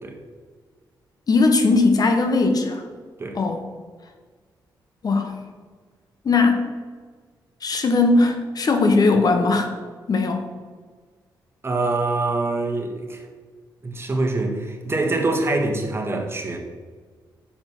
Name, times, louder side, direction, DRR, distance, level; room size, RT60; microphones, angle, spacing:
voice 1, 1.3-2.8 3.3-3.6 5.0-5.3 6.2-6.7 7.6-9.7 10.1-10.4, left 3 dB, 50° left, 5 dB, 1.2 m, -19 dB
voice 2, 11.6-13.2 13.8-16.6, right 2 dB, 30° right, 2 dB, 1.5 m, -24 dB
7.1 x 5.2 x 6.0 m, 1.5 s
cardioid pair, 85°, 8 cm